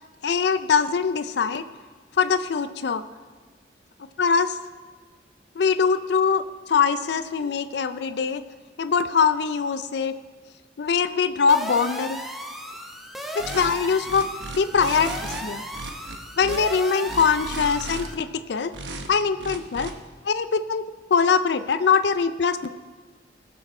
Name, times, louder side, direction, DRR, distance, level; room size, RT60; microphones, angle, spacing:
voice 1, 0.2-1.6 2.2-3.0 4.2-4.6 5.6-8.4 8.8-10.1 10.8-12.2 13.4-14.3 14.6-15.6 16.4-18.7 19.1-19.9 20.2-20.8 21.1-22.7, left 5 dB, 65° left, 11 dB, 0.4 m, -22 dB
sound 1, 11.5-18.2, equal, ahead, 0.8 m, -36 dB
sound 2, 13.4-13.7 14.0-15.4 15.7-16.6 17.0-18.1 18.7-19.1 19.4-19.9, right 2 dB, 80° right, 1.0 m, -35 dB
19.0 x 6.4 x 4.3 m, 1.5 s
head